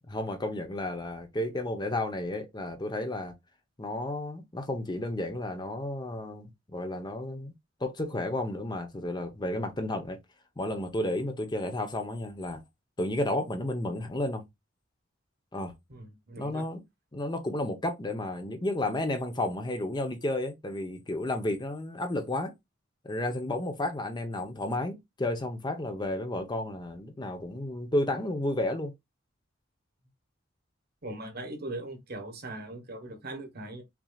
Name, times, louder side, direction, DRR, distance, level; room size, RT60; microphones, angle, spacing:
voice 1, 0.1-3.3 3.8-7.5 7.8-10.2 10.6-12.6 13.0-14.4 15.5-15.7 16.4-16.8 17.1-22.5 23.0-28.9, left 1 dB, 20° left, 0.8 m, -32 dB
voice 2, 15.9-16.7 31.0-33.8, right 2 dB, 50° right, 1.2 m, -40 dB
6.0 x 2.8 x 2.3 m
head